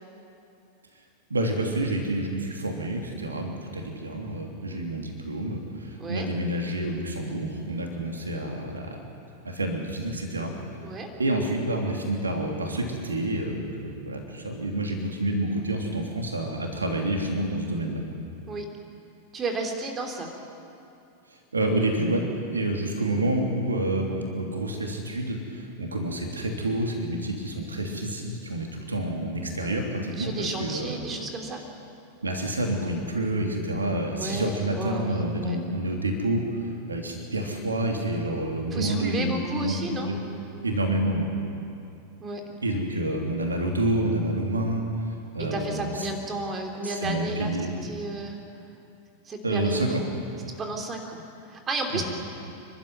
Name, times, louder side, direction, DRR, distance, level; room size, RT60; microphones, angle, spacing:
voice 1, 1.3-9.0 9.4-10.5 11.2-18.0 21.5-22.2 22.5-31.0 32.2-36.4 36.9-40.2 40.6-41.3 42.6-44.8 45.3-46.1 46.8-47.7 49.4-50.0 51.9-52.0, right 1 dB, 75° right, 2 dB, 3.1 m, -28 dB
voice 2, 19.3-20.3 30.2-31.6 34.2-35.6 38.7-40.1 42.2-42.4 45.4-47.6 47.8-48.4 49.3-49.9 50.6-51.2 51.5-52.0, right 2 dB, 25° right, 3 dB, 3.2 m, -32 dB
29.5 x 12.5 x 9.5 m, 2.6 s
figure-of-eight pair, 90°, 0 cm